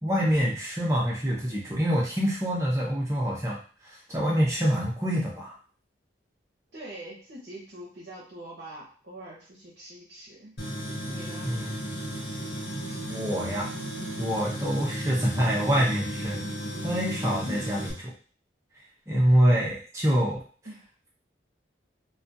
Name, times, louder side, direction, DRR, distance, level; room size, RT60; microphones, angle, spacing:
voice 1, 0.0-5.6 11.4-11.8 13.1-13.7 14.2-16.4 16.8-17.9 19.1-20.4, equal, 15° right, -4 dB, 0.6 m, -26 dB
voice 2, 6.7-10.6 11.0-11.5 17.4-17.8 20.6-20.9, right 1 dB, 60° right, -5 dB, 0.7 m, -43 dB
Tools, 10.6-17.9, equal, 60° left, 0.8 m, -34 dB
2.3 x 2.2 x 2.6 m, 0.40 s
head